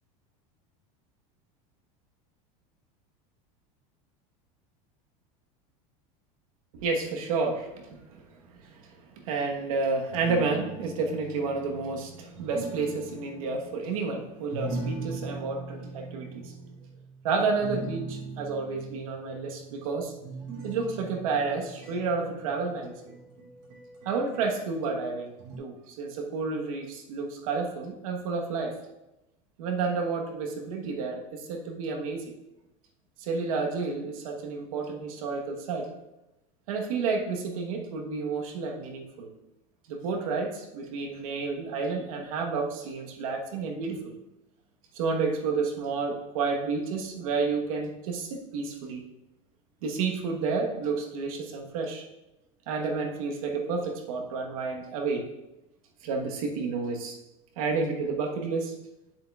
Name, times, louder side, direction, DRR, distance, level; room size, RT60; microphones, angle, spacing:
voice 1, 6.7-16.5 17.2-20.1 20.6-23.1 24.0-25.3 25.6-28.8 29.6-32.3 33.2-35.9 36.7-39.3 39.9-44.1 44.9-49.0 49.8-52.0 52.7-55.3 56.0-57.2 57.6-58.7, right 4 dB, 90° right, 2 dB, 1.3 m, -30 dB
sound 1, 10.1-24.6 25.4-25.6, right 3 dB, 65° right, 2.6 m, -41 dB
9.1 x 7.4 x 2.4 m, 0.95 s
supercardioid pair, 170°, 17 cm